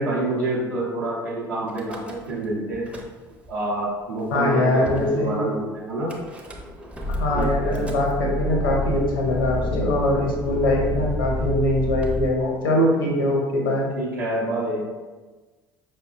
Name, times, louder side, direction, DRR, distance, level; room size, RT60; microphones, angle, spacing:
voice 1, 0.0-2.9 3.5-6.1 7.3-7.8 9.8-10.1 14.0-14.9, right 1 dB, 75° right, -7 dB, 0.8 m, -27 dB
Car / Engine starting / Idling, 1.7-2.5 2.7-3.5 4.2-4.3 4.4-4.5 4.9-5.1 6.1-12.3, left 1 dB, 10° right, 0.5 m, -30 dB
voice 2, 4.3-5.5 7.1-13.9, left 1 dB, 75° left, 0 dB, 0.6 m, -22 dB
5.0 x 2.1 x 2.4 m, 1.3 s
figure-of-eight pair, 60°, 11 cm